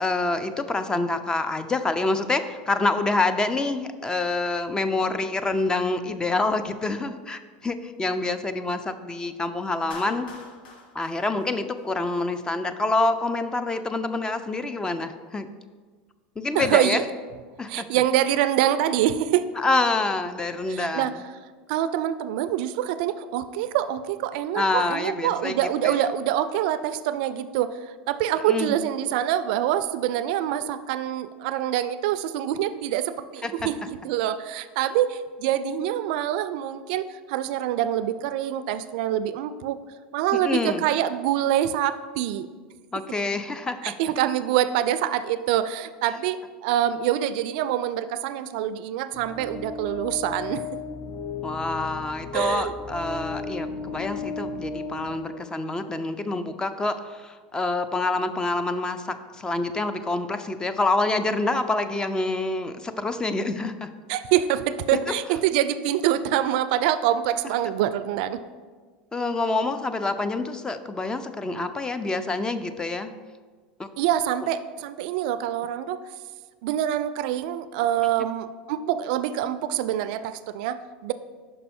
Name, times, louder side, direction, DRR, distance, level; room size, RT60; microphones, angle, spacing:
voice 1, 0.0-10.3 10.9-15.5 16.4-17.0 17.6-17.9 19.6-21.2 24.5-25.6 25.8-26.0 28.5-28.7 33.4-33.7 40.4-40.8 42.9-43.9 51.4-63.9 69.1-73.1 73.8-73.9, left 2 dB, 15° left, 10 dB, 0.4 m, -27 dB
Clapping, 9.9-12.2, left 3 dB, 80° left, 1.1 m, -44 dB
voice 2, 16.5-17.0 17.7-19.5 20.7-21.1 21.7-27.8 28.1-33.8 34.0-39.8 40.1-42.5 43.8-50.7 52.3-52.7 64.1-68.4 74.0-76.0 76.6-81.1, right 11 dB, 70° right, 13 dB, 0.3 m, -25 dB
sound 1, 49.1-56.1, left 4 dB, 45° left, 1.0 m, -35 dB
5.4 x 5.4 x 4.2 m, 1.5 s
supercardioid pair, 105°, 5 cm